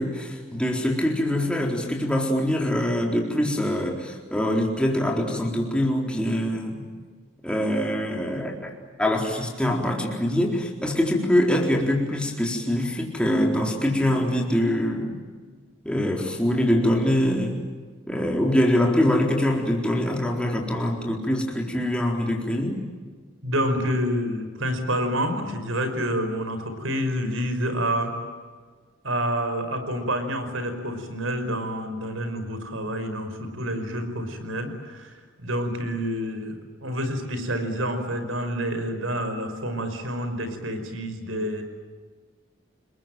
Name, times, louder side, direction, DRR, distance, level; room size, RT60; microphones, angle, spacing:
voice 1, 0.0-6.8 7.4-8.7 9.0-15.2 15.8-17.6 18.1-22.8, left 1 dB, 5° left, 0 dB, 4.1 m, -24 dB
voice 2, 23.4-28.1 29.0-41.6, equal, 75° right, 8 dB, 5.3 m, -28 dB
30.0 x 21.5 x 9.1 m, 1.5 s
head